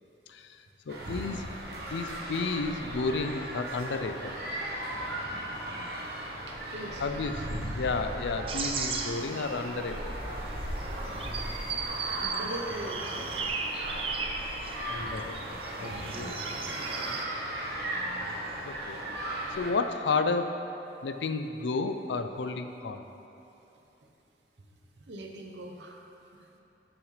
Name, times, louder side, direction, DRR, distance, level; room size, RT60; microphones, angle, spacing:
voice 1, 0.9-1.4 1.9-4.6 7.0-10.1 14.9-16.4 18.6-19.0 19.6-20.5 21.0-23.0, left 4 dB, 85° left, 8 dB, 0.5 m, -32 dB
sound 1, 0.9-19.7, right 1 dB, 60° right, 1.2 m, -37 dB
voice 2, 6.5-7.1 12.2-13.4 15.8-16.6 25.0-26.4, right 1 dB, 85° right, 2 dB, 0.8 m, -42 dB
sound 2, 8.5-17.3, right 5 dB, 30° right, 0.4 m, -37 dB
10.0 x 6.2 x 3.2 m, 2.9 s
head